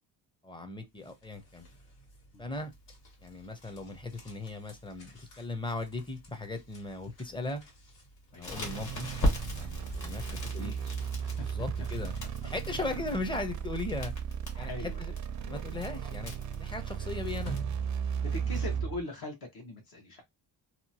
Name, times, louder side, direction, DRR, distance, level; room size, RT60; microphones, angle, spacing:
voice 1, 0.4-1.7 2.4-2.7 3.2-7.6 8.3-9.1 9.5-10.7 11.4-12.1 12.4-14.1 14.6-15.1 15.4-16.3 16.6-17.6 18.5-18.6, left 2 dB, 10° left, 0.6 m, -38 dB
sound 1, 0.9-18.7, right 2 dB, 80° left, 1.8 m, -53 dB
voice 2, 8.3-8.6 10.3-10.9 11.2-11.9 12.7-12.9 14.5-15.0 15.9-16.1 17.0-17.1 18.0-20.2, left 2 dB, 60° left, 1.1 m, -43 dB
Crackle, 8.4-17.6, equal, 45° left, 1.5 m, -38 dB
sound 2, 8.5-19.0, right 7 dB, 45° right, 0.4 m, -36 dB
2.8 x 2.3 x 2.7 m
cardioid pair, 110°, 42 cm